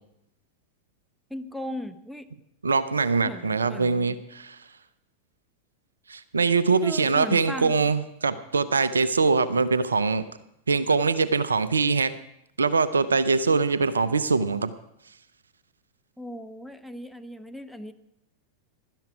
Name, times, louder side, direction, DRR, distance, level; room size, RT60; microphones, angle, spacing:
voice 1, 1.3-2.3 3.2-4.2 6.8-7.9 16.2-17.9, equal, ahead, 11 dB, 1.0 m, -37 dB
voice 2, 2.6-4.6 6.1-10.2 10.7-12.2 12.6-14.7, right 4 dB, 75° right, 15 dB, 0.7 m, -23 dB
16.0 x 12.5 x 4.7 m, 0.78 s
figure-of-eight pair, 90°, 0 cm